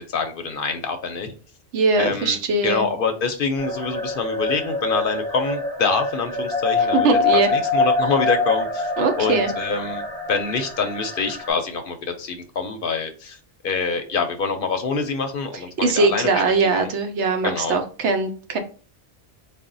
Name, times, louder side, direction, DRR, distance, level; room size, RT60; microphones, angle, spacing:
voice 1, 0.0-1.3 2.0-7.1 7.3-8.9 9.2-10.0 10.3-13.4 13.6-16.9 17.4-17.8, left 4 dB, 60° left, 6 dB, 0.7 m, -25 dB
voice 2, 1.7-2.8 6.9-7.5 9.0-9.5 15.8-18.6, right 3 dB, 75° right, 6 dB, 0.9 m, -21 dB
sound 1, 3.6-11.5, left 3 dB, 30° right, 0.5 m, -25 dB
4.1 x 2.1 x 3.8 m, 0.39 s
omnidirectional pair, 1.2 m